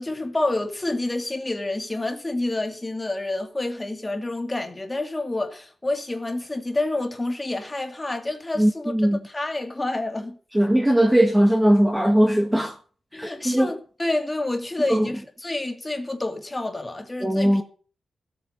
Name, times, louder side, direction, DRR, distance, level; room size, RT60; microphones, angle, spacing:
voice 1, 0.0-10.4 13.1-17.6, left 2 dB, 15° left, 2.4 m, -28 dB
voice 2, 8.6-9.2 10.5-12.8 13.2-13.7 14.9-15.1 17.2-17.6, equal, 5° right, 1.5 m, -19 dB
15.5 x 8.7 x 6.5 m
wide cardioid pair, 135°, 0 cm